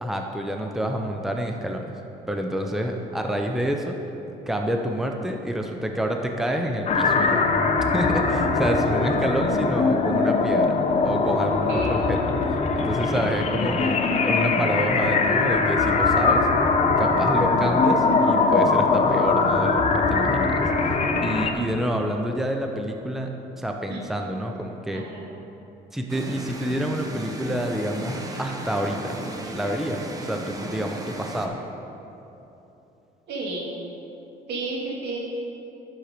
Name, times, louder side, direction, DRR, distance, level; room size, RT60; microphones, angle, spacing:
voice 1, 0.0-2.0 2.3-4.0 4.5-7.4 7.9-10.7 11.0-12.2 12.5-14.0 14.2-16.5 17.0-20.7 21.2-23.3 23.6-25.0 25.9-29.2 29.5-31.6, equal, ahead, 3 dB, 0.7 m, -28 dB
sound 1, 6.9-21.5, left 4 dB, 40° left, 0.9 m, -21 dB
voice 2, 11.7-12.0 21.1-21.3 23.9-24.0 24.9-25.3 33.3-33.7 34.5-35.2, right 3 dB, 80° right, -2 dB, 2.2 m, -32 dB
sound 2, 26.1-31.5, right 1 dB, 20° right, 1.1 m, -35 dB
10.5 x 6.5 x 5.1 m, 3.0 s
cardioid pair, 110°, 17 cm